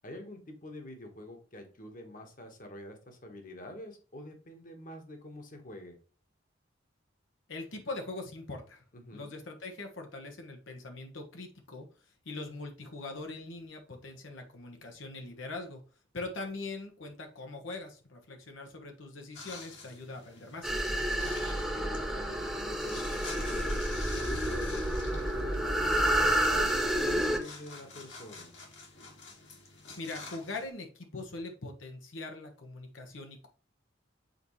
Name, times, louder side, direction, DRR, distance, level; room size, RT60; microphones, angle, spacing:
voice 1, 0.0-6.0 8.9-9.3 21.2-23.8 24.2-28.5, left 1 dB, 45° left, 4 dB, 1.4 m, -46 dB
voice 2, 7.5-8.8 9.1-15.8 16.1-20.7 30.0-33.5, left 2 dB, 85° left, 3 dB, 1.3 m, -42 dB
sound 1, 19.3-30.7, left 4 dB, 70° left, 2.1 m, -48 dB
sound 2, 20.6-27.4, right 1 dB, ahead, 1.0 m, -29 dB
7.9 x 4.2 x 3.2 m, 0.38 s
head